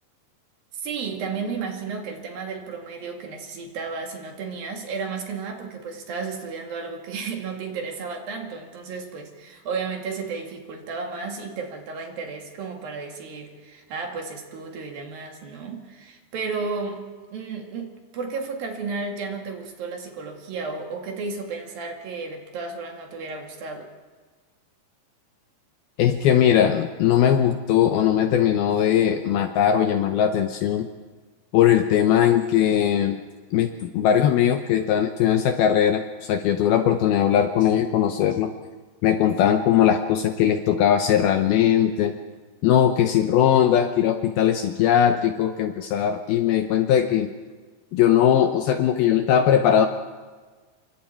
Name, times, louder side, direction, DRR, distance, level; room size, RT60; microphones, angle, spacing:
voice 1, 0.7-17.0 17.3-23.9, right 4 dB, 60° right, 2 dB, 3.7 m, -33 dB
voice 2, 26.0-30.9 31.5-33.2 33.5-38.5 39.0-42.1 42.6-47.3 47.9-49.9, left 9 dB, 75° left, 7 dB, 2.3 m, -20 dB
27.5 x 24.5 x 4.5 m, 1.4 s
omnidirectional pair, 5.1 m